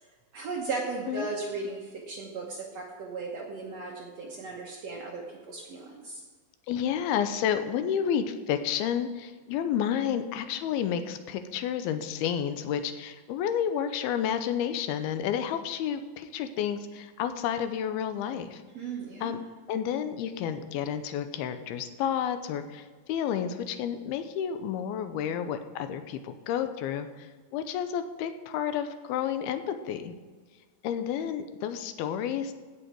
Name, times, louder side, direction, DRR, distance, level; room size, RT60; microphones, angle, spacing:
voice 1, 0.3-6.2 18.7-19.3, right 4 dB, 65° right, -1 dB, 1.7 m, -36 dB
voice 2, 6.7-18.6 19.2-19.4 19.7-30.1 30.8-32.5, left 9 dB, 85° left, 9 dB, 2.7 m, -30 dB
16.0 x 6.4 x 4.6 m, 1.5 s
omnidirectional pair, 4.3 m